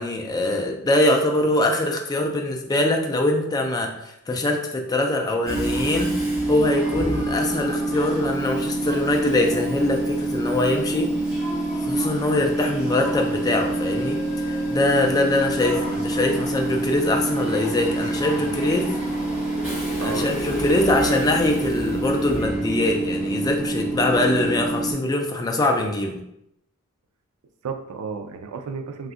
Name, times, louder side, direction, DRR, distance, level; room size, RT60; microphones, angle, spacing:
voice 1, 0.0-6.1 6.5-11.1 11.8-18.9 20.0-26.2, left 1 dB, 15° left, 2 dB, 0.3 m, -23 dB
Train / Subway metro underground, 5.4-24.9, right 2 dB, 5° right, 1.4 m, -26 dB
voice 2, 18.4-18.9 20.0-21.2 27.6-29.1, right 5 dB, 90° right, 7 dB, 0.4 m, -34 dB
2.5 x 2.3 x 3.5 m, 0.81 s
head